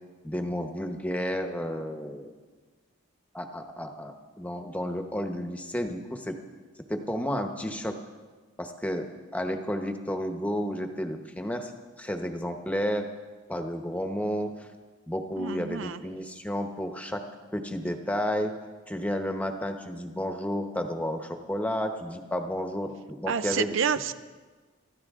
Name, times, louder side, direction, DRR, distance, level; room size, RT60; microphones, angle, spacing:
voice 1, 0.2-2.3 3.3-6.4 6.9-8.0 8.6-11.7 12.0-13.1 13.5-14.7 15.1-17.2 17.5-18.5 18.9-23.7, equal, 5° left, 5 dB, 1.0 m, -31 dB
voice 2, 15.4-16.0 23.3-24.1, right 6 dB, 65° right, 12 dB, 0.5 m, -29 dB
25.0 x 13.5 x 3.7 m, 1.4 s
head